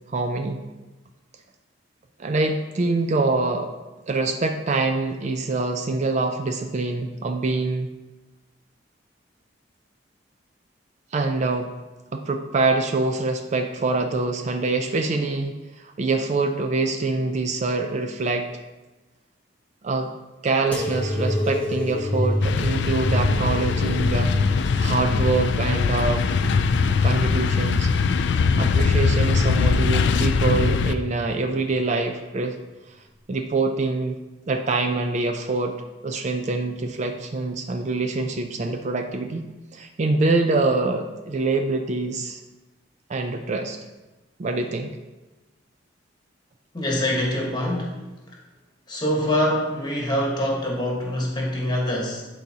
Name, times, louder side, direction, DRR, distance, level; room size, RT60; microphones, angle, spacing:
voice 1, 0.1-0.6 2.2-3.7 4.1-7.9 11.1-11.7 12.1-18.5 19.8-20.1 20.4-24.3 24.8-26.2 27.0-27.9 28.6-32.6 33.3-34.2 34.5-35.8 36.0-42.4 43.1-43.8 44.4-44.9, right 3 dB, 40° right, 5 dB, 0.4 m, -25 dB
sound 1, 20.7-27.9 28.5-29.2 30.0-30.5 31.5-31.6, left 1 dB, 5° left, 0.7 m, -28 dB
sound 2, 22.4-30.9, left 5 dB, 65° left, 0.3 m, -21 dB
voice 2, 46.7-47.9 48.9-52.2, left 1 dB, 25° left, -2 dB, 1.3 m, -24 dB
11.5 x 3.9 x 2.8 m, 1.1 s
head